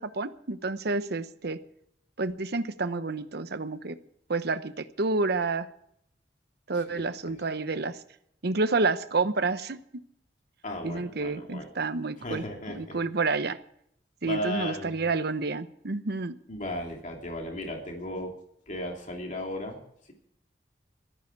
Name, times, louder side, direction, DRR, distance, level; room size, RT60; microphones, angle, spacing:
voice 1, 0.0-1.6 2.2-4.0 4.3-5.7 6.7-8.0 8.4-9.8 10.8-13.6 14.2-16.4, right 3 dB, 65° right, 12 dB, 0.9 m, -29 dB
voice 2, 6.7-7.3 10.6-11.7 12.2-13.0 14.2-15.0 16.5-18.3 18.7-19.8, left 1 dB, 45° left, 1 dB, 3.0 m, -36 dB
16.0 x 13.5 x 4.7 m, 0.72 s
head